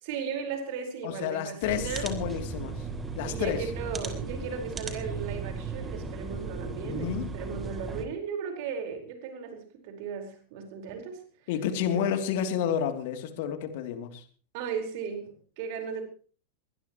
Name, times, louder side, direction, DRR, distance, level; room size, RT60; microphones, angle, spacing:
voice 1, 0.0-2.1 3.2-11.2 11.9-12.0 14.5-16.0, right 6 dB, 50° right, 5 dB, 4.8 m, -36 dB
voice 2, 1.0-2.8 3.2-3.6 6.8-7.3 11.5-14.2, left 8 dB, 50° left, 7 dB, 3.0 m, -30 dB
sound 1, 1.6-8.0, right 4 dB, 15° right, 3.3 m, -36 dB
23.5 x 19.5 x 3.1 m, 0.41 s
figure-of-eight pair, 90°, 0 cm